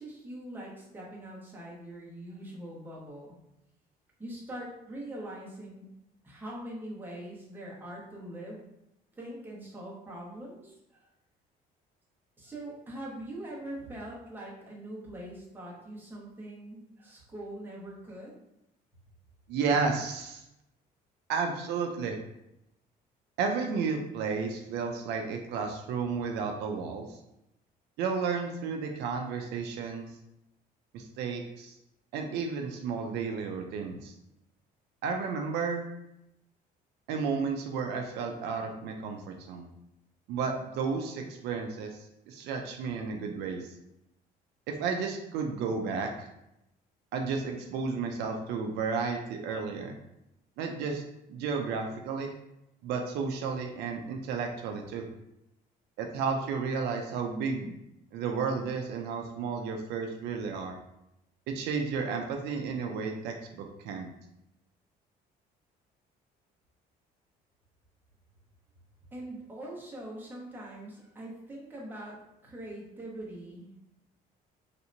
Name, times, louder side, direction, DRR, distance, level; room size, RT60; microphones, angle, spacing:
voice 1, 0.0-3.3 4.2-5.9 6.2-8.6 9.2-11.1 12.4-18.4 69.1-73.7, right 1 dB, 10° right, -4 dB, 1.1 m, -43 dB
voice 2, 19.5-20.4 21.3-22.2 23.4-27.2 28.0-30.1 30.9-31.7 32.1-34.1 35.0-35.8 37.1-39.7 40.3-43.7 44.7-46.3 47.1-50.0 50.6-51.0 51.3-52.3 52.8-55.1 56.0-57.7 58.1-60.8 61.5-64.1, right 5 dB, 80° right, 3 dB, 0.4 m, -32 dB
3.2 x 2.8 x 2.6 m, 0.85 s
cardioid pair, 110°, 17 cm